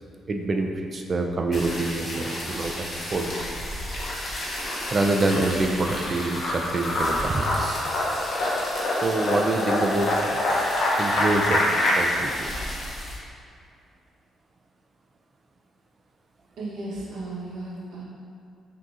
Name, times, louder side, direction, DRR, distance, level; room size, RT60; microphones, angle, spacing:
voice 1, 0.3-3.3 4.9-7.9 9.0-10.4 11.0-11.7 11.9-12.3, right 2 dB, 35° right, 3 dB, 0.4 m, -26 dB
sound 1, 1.5-13.2, left 1 dB, 45° left, 1.0 m, -34 dB
sound 2, 2.0-2.8 3.2-11.9, left 1 dB, 65° left, 0.6 m, -26 dB
voice 2, 16.6-18.0, right 2 dB, 75° right, -5 dB, 0.9 m, -35 dB
6.0 x 2.8 x 2.4 m, 2.3 s
cardioid pair, 105°, 0 cm